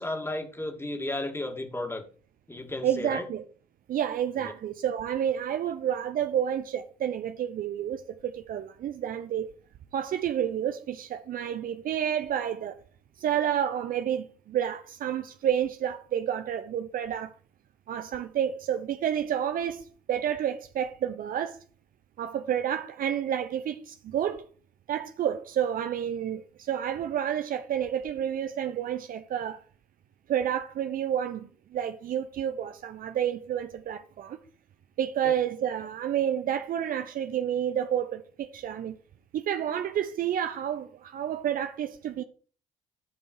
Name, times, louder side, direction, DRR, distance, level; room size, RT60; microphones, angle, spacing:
voice 1, 0.0-2.0 2.5-3.3 4.4-4.5 35.2-35.3, left 2 dB, 10° left, 2.5 m, -34 dB
voice 2, 2.8-3.4 3.9-9.5 9.9-12.8 13.2-17.3 17.9-21.6 22.2-24.4 24.9-29.6 30.3-34.4 35.0-39.0 39.3-42.2, right 9 dB, 50° right, 0.9 m, -30 dB
14.0 x 5.4 x 4.7 m
figure-of-eight pair, 50°, 19 cm